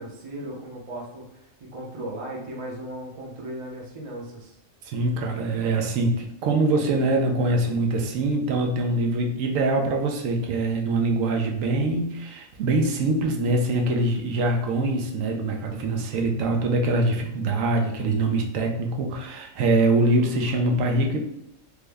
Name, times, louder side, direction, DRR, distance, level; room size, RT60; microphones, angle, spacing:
voice 1, 0.0-4.6, right 1 dB, 40° right, -1 dB, 0.5 m, -37 dB
voice 2, 4.8-21.2, right 2 dB, 90° right, 2 dB, 1.0 m, -24 dB
3.4 x 2.0 x 3.3 m, 0.80 s
omnidirectional pair, 1.3 m